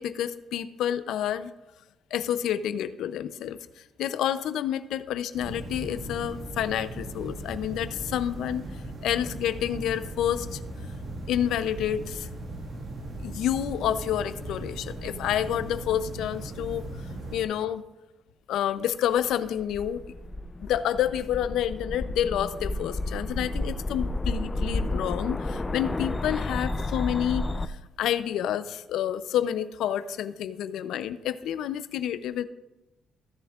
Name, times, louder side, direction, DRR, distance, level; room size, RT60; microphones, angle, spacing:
voice 1, 0.0-1.5 2.1-3.6 4.0-8.7 9.0-10.6 11.3-12.3 13.2-16.8 17.3-17.8 18.5-20.0 20.6-32.4, left 10 dB, 80° left, 13 dB, 0.5 m, -29 dB
sound 1, 5.3-17.4, right 1 dB, 55° right, 1.7 m, -38 dB
sound 2, 19.3-27.7, left 2 dB, 25° left, 0.5 m, -31 dB
16.0 x 7.1 x 2.4 m, 1.0 s
cardioid pair, 90°, 0 cm